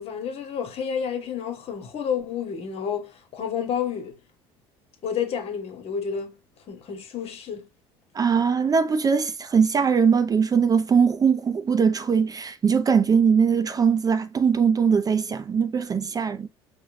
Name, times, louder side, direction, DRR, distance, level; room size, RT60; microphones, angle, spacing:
voice 1, 0.0-4.2 5.0-6.4 6.7-7.7, left 7 dB, 50° left, 1.2 m, -30 dB
voice 2, 8.1-16.5, right 6 dB, 30° right, 0.4 m, -21 dB
4.7 x 2.2 x 3.1 m
hypercardioid pair, 70°, 13 cm